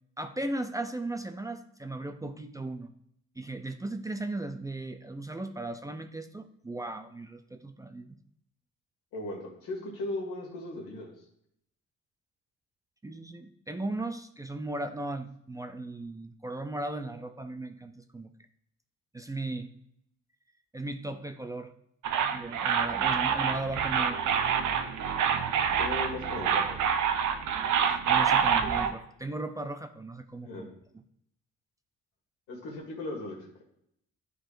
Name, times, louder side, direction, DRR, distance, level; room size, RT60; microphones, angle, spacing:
voice 1, 0.2-2.9 3.4-8.2 13.0-18.3 19.1-19.7 20.7-21.7 22.3-24.2 27.8-30.7 30.9-31.0, right 2 dB, 10° right, 7 dB, 0.4 m, -37 dB
voice 2, 9.1-11.1 25.7-26.8 30.4-30.6 32.5-33.6, left 2 dB, 85° left, -1 dB, 2.0 m, -37 dB
sound 1, 22.0-28.9, right 7 dB, 75° right, 0.7 m, -27 dB
10.0 x 4.7 x 2.5 m, 0.73 s
cardioid pair, 90°, 30 cm